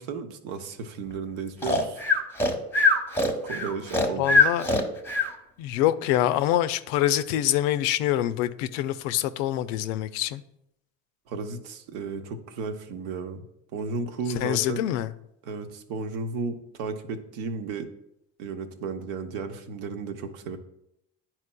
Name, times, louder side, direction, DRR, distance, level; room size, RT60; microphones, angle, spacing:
voice 1, 0.0-2.0 3.4-4.3 11.3-13.4 13.7-14.9 15.4-17.9 18.4-20.6, right 4 dB, 75° right, 7 dB, 0.8 m, -34 dB
Breathing, 1.6-5.3, left 3 dB, 5° left, 0.8 m, -22 dB
voice 2, 4.2-4.7 5.6-10.4 14.4-15.1, left 12 dB, 75° left, 13 dB, 0.5 m, -25 dB
9.8 x 4.4 x 2.2 m, 0.80 s
supercardioid pair, 90°, 38 cm